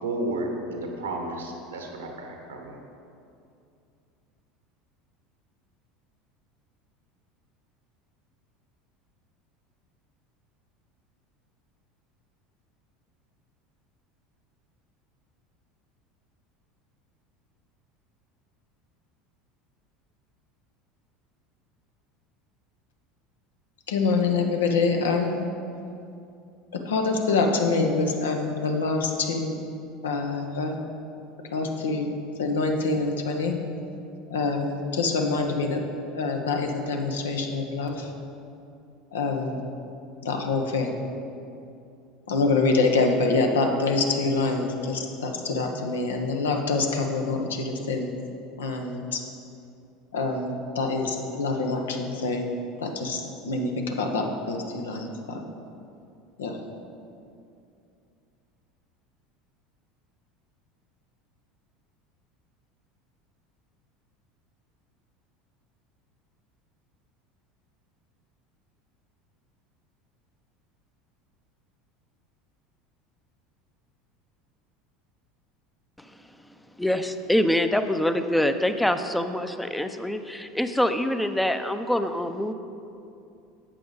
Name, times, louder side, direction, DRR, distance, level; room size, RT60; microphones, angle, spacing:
voice 1, 0.0-2.8, right 2 dB, 85° right, 2 dB, 1.4 m, -32 dB
voice 2, 23.9-25.5 26.7-29.6 30.0-30.8 31.4-32.1 32.4-33.6 34.3-35.8 36.1-38.1 39.1-39.6 40.2-41.0 42.3-48.2 48.6-49.2 50.1-52.5 52.8-55.4 56.4-56.6, left 3 dB, 80° left, 3 dB, 1.0 m, -26 dB
voice 3, 76.8-82.5, left 1 dB, 5° left, 9 dB, 0.6 m, -25 dB
11.5 x 7.7 x 4.0 m, 2.6 s
hypercardioid pair, 75°, 0 cm